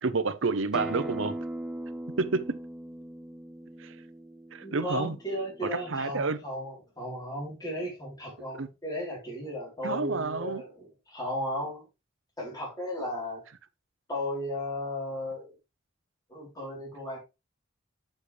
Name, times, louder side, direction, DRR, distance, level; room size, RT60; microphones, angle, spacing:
voice 1, 0.0-1.4 2.2-2.6 3.8-4.0 4.5-5.2 5.7-6.4 8.6-8.7 9.8-10.6, right 4 dB, 80° right, 0.7 m, -29 dB
Acoustic guitar, 0.7-5.9, right 1 dB, 5° right, 0.6 m, -39 dB
voice 2, 4.6-11.8 12.4-13.4 14.1-15.5 16.3-17.2, left 1 dB, 20° left, 3.7 m, -35 dB
7.3 x 6.6 x 3.3 m
head